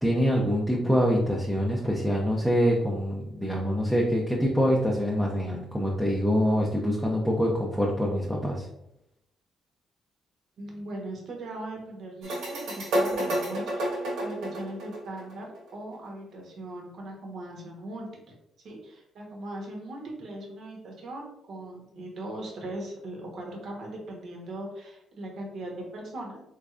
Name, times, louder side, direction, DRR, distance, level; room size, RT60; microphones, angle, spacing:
voice 1, 0.0-8.7, equal, ahead, -4 dB, 0.6 m, -25 dB
voice 2, 10.6-18.1 18.6-26.4, right 1 dB, 65° right, 0 dB, 1.1 m, -39 dB
sound 1, 12.2-15.7, right 1 dB, 90° right, 1.4 m, -30 dB
3.6 x 3.2 x 2.4 m, 0.81 s
cardioid pair, 90°, 0 cm